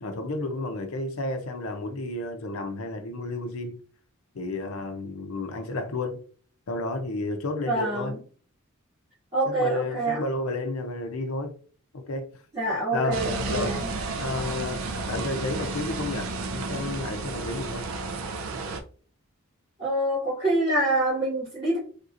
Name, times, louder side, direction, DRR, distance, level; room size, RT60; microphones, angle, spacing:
voice 1, 0.0-3.8 4.3-6.2 6.7-8.2 9.5-11.5 11.9-12.3 12.9-13.8 14.1-17.9, left 2 dB, 85° left, 0.6 m, -32 dB
voice 2, 7.6-8.2 9.3-10.2 12.5-13.9 19.8-21.8, right 1 dB, 25° right, 1.6 m, -26 dB
sound 1, 13.1-18.8, right 3 dB, 75° right, 0.4 m, -32 dB
3.5 x 2.7 x 2.5 m
head